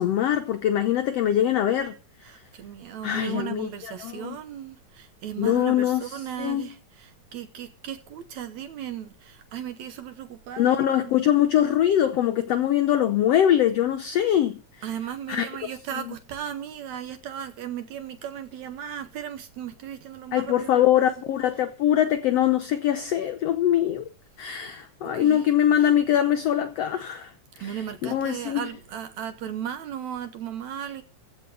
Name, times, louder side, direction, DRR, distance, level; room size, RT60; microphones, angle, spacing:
voice 1, 0.0-1.9 3.0-3.7 4.0-4.4 5.4-6.0 6.4-6.6 10.6-14.6 15.3-15.5 20.3-24.1 24.4-27.3 27.6-27.7 28.0-28.6, left 11 dB, 75° left, 1.4 m, -22 dB
voice 2, 2.2-10.8 14.8-21.1 24.5-24.7 25.0-25.5 25.8-25.9 27.6-31.0, right 9 dB, 70° right, 2.0 m, -36 dB
15.5 x 6.4 x 8.2 m
omnidirectional pair, 3.9 m